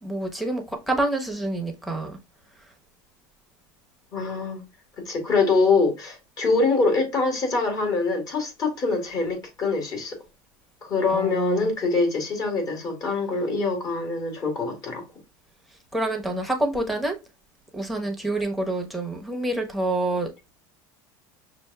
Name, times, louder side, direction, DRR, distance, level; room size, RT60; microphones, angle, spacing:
voice 1, 0.0-2.2 11.1-11.7 15.9-17.2 17.7-20.3, right 2 dB, ahead, 1.0 m, -27 dB
voice 2, 4.1-4.6 5.1-10.2 10.8-15.0, left 3 dB, 40° left, 2.1 m, -24 dB
6.0 x 2.6 x 2.2 m
supercardioid pair, 120°, 11 cm